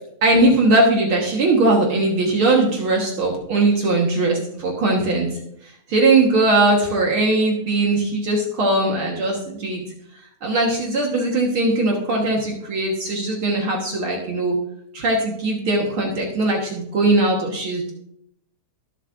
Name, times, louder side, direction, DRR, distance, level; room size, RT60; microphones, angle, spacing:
voice 1, 0.2-5.3 5.9-9.9 10.4-14.6 14.9-17.9, right 2 dB, 55° right, -1 dB, 1.9 m, -19 dB
22.5 x 7.6 x 2.6 m, 0.75 s
omnidirectional pair, 3.3 m